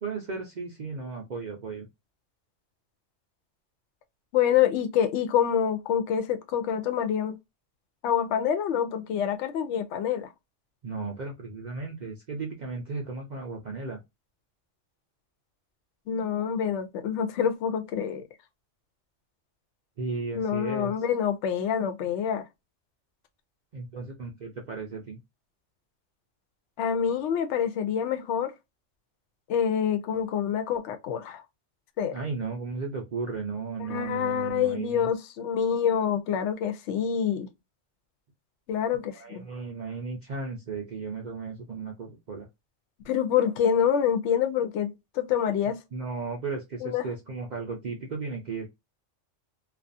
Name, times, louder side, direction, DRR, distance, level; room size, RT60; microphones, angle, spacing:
voice 1, 0.0-1.9 10.8-14.0 20.0-20.9 23.7-25.2 32.1-35.1 39.1-42.5 45.9-48.7, right 4 dB, 50° right, 0.6 m, -35 dB
voice 2, 4.3-7.4 8.0-10.3 16.1-18.3 20.3-22.4 26.8-28.5 29.5-31.4 32.0-32.1 33.8-37.5 38.7-39.4 43.1-45.8 46.8-47.1, left 8 dB, 75° left, 0.9 m, -26 dB
2.4 x 2.4 x 2.5 m
omnidirectional pair, 1.2 m